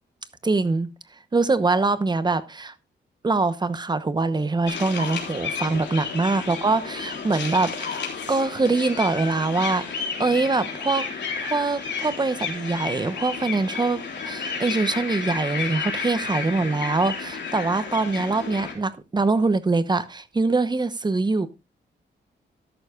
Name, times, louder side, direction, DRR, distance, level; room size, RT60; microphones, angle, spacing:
voice 1, 0.4-0.9 1.3-2.7 3.2-11.1 11.4-21.5, right 3 dB, 20° right, 0.9 m, -24 dB
sound 1, 4.7-18.7, left 5 dB, 65° left, 3.6 m, -32 dB
13.0 x 11.5 x 2.4 m
cardioid pair, 120°, 19 cm